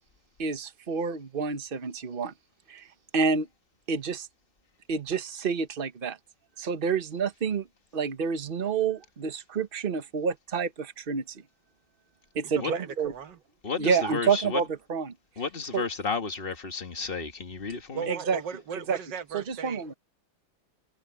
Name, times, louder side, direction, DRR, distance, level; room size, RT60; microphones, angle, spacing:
voice 1, 0.4-2.3 2.7-2.9 3.1-3.5 3.9-4.3 4.9-6.2 6.6-7.7 7.9-11.4 12.3-13.1 13.8-15.1 15.7-15.8 18.1-18.4 18.9-19.0 19.3-19.9, right 5 dB, 35° right, 1.1 m, -28 dB
voice 2, 12.6-13.4 17.9-19.8, right 7 dB, 65° right, 1.8 m, -37 dB
voice 3, 13.6-14.6 15.4-18.1, left 4 dB, 30° left, 1.6 m, -32 dB
omnidirectional pair, 2.2 m